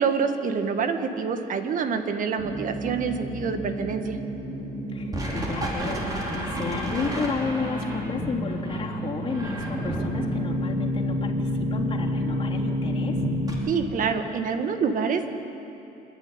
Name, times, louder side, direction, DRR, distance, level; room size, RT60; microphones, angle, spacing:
voice 1, 0.0-4.2 13.7-15.3, right 6 dB, 50° right, 7 dB, 1.8 m, -26 dB
sound 1, 2.4-13.5, equal, 20° right, 4.7 m, -29 dB
voice 2, 4.9-13.2, left 4 dB, 30° left, -3 dB, 3.4 m, -32 dB
27.0 x 11.0 x 9.9 m, 2.8 s
cardioid pair, 110°, 17 cm